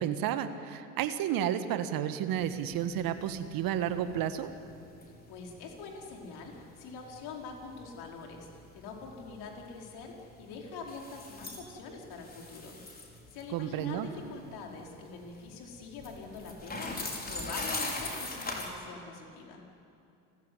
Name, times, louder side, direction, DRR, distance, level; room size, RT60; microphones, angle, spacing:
voice 1, 0.0-4.5 13.5-14.1, right 10 dB, 50° right, 10 dB, 1.6 m, -31 dB
sound 1, 2.4-18.7, left 2 dB, 20° left, 5.0 m, -42 dB
voice 2, 5.3-12.8 13.3-19.6, left 4 dB, 55° left, 1 dB, 5.0 m, -44 dB
30.0 x 15.5 x 9.8 m, 2.6 s
hypercardioid pair, 75°, 46 cm